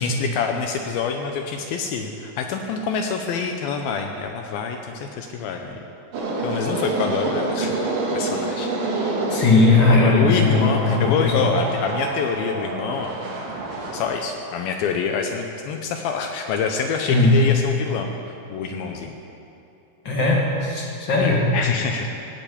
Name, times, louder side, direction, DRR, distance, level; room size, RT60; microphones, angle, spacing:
voice 1, 0.0-5.8 6.4-7.8 8.1-8.7 9.3-13.2 13.9-18.1 18.5-19.1 21.2-22.1, left 5 dB, 80° left, 4 dB, 2.2 m, -26 dB
sound 1, 6.1-14.0, right 2 dB, 75° right, 4.5 m, -27 dB
voice 2, 9.3-11.5 17.1-17.5 20.0-21.5, left 3 dB, 40° left, -2 dB, 1.7 m, -18 dB
16.5 x 8.9 x 8.7 m, 2.7 s
omnidirectional pair, 5.2 m